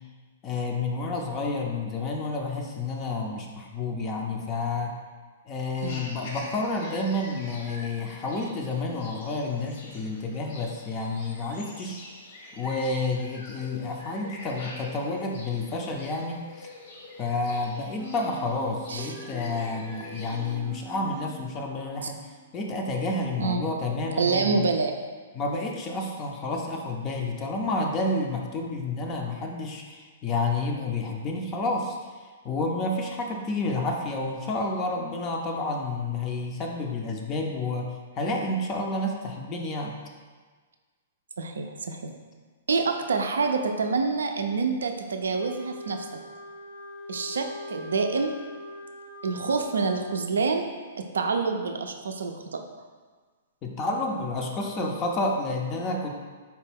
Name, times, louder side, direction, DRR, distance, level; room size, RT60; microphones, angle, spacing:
voice 1, 0.4-5.0 5.5-12.0 12.5-16.7 17.2-22.2 22.5-24.7 25.3-32.0 32.4-40.0 53.6-56.1, left 2 dB, 30° left, 1 dB, 0.4 m, -30 dB
sound 1, 5.8-20.5, left 2 dB, 60° left, 0.8 m, -45 dB
sound 2, 18.0-22.7, right 4 dB, 25° right, 0.5 m, -45 dB
voice 2, 24.2-24.9 41.4-42.1 42.7-46.0 47.1-48.4 49.2-50.7 51.1-52.6, right 4 dB, 80° right, 5 dB, 0.3 m, -27 dB
Wind instrument woodwind instrument, 45.3-50.1, left 1 dB, 85° left, 0.7 m, -42 dB
4.2 x 2.2 x 3.4 m, 1.5 s
hypercardioid pair, 120°, 0 cm